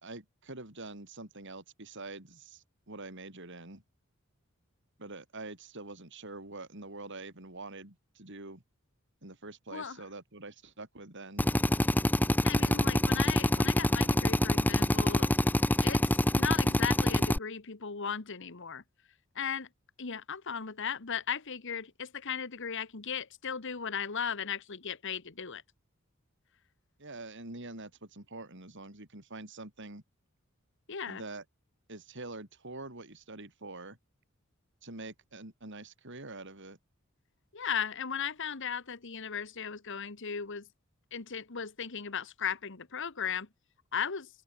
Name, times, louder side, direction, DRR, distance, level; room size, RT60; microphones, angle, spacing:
voice 1, 0.0-3.8 5.0-8.6 9.2-11.5 27.0-30.0 31.1-31.4 31.9-34.0 34.8-36.8, right 2 dB, 60° right, 5.0 m, -45 dB
Drill, 11.4-17.4, left 1 dB, 10° left, 0.9 m, -26 dB
voice 2, 12.4-15.3 15.8-18.8 19.3-19.7 20.0-25.6 30.9-31.2 37.5-40.7 41.1-43.5 43.9-44.3, left 7 dB, 60° left, 1.4 m, -36 dB
head